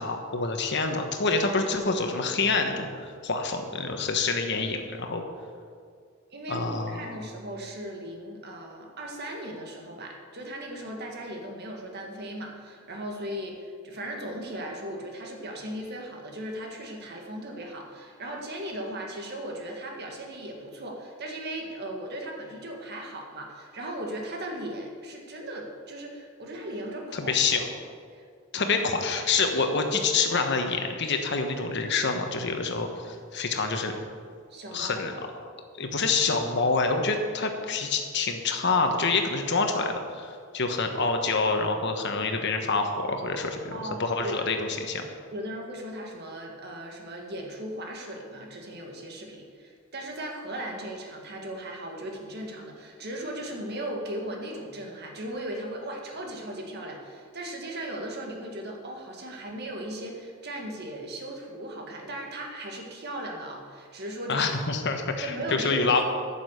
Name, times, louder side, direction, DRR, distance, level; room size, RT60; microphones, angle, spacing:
voice 1, 0.0-5.2 6.5-7.2 27.1-27.7 28.5-34.0 34.7-35.1 35.8-45.0 64.3-66.0, left 4 dB, 60° left, 5 dB, 1.3 m, -27 dB
voice 2, 6.3-27.7 28.1-28.2 28.5-28.7 34.5-35.1 43.7-44.5 45.3-64.5 65.2-66.0, right 1 dB, 55° right, 1 dB, 1.9 m, -37 dB
9.8 x 7.0 x 8.1 m, 2.1 s
head